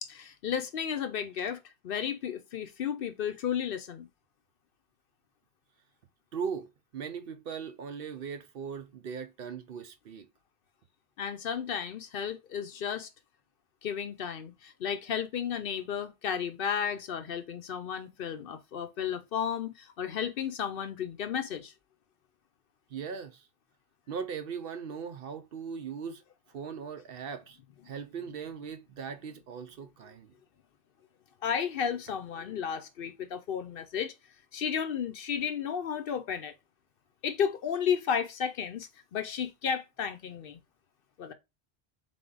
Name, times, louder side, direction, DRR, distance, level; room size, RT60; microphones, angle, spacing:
voice 1, 0.0-4.1 11.2-13.1 13.8-21.7 31.4-34.1 34.5-36.5 37.2-40.6 41.2-41.3, left 7 dB, 60° left, 0.7 m, -33 dB
voice 2, 6.3-6.7 6.9-10.3 22.9-23.4 24.1-26.2 26.5-27.6 27.9-30.3, right 6 dB, 65° right, 0.7 m, -39 dB
3.8 x 3.4 x 3.8 m
omnidirectional pair, 1.1 m